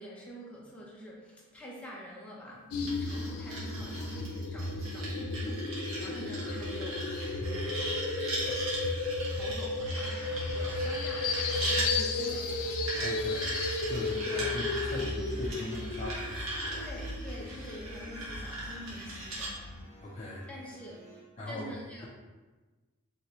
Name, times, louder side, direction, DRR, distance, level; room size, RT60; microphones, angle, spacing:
voice 1, 0.0-7.9 8.3-8.7 9.3-12.5 14.2-14.5 16.7-19.6 20.5-22.1, equal, 5° left, -5 dB, 0.8 m, -46 dB
sound 1, 2.7-19.8, left 3 dB, 85° left, 0.5 m, -34 dB
sound 2, 2.9-11.9 12.9-19.5, right 1 dB, 75° right, 1.3 m, -38 dB
sound 3, 12.1-21.2, right 1 dB, 35° right, 1.3 m, -53 dB
voice 2, 12.9-13.6 13.9-16.9 20.0-20.5 21.4-21.7, left 1 dB, 30° left, -5 dB, 0.5 m, -40 dB
4.4 x 3.3 x 3.0 m, 1.3 s
head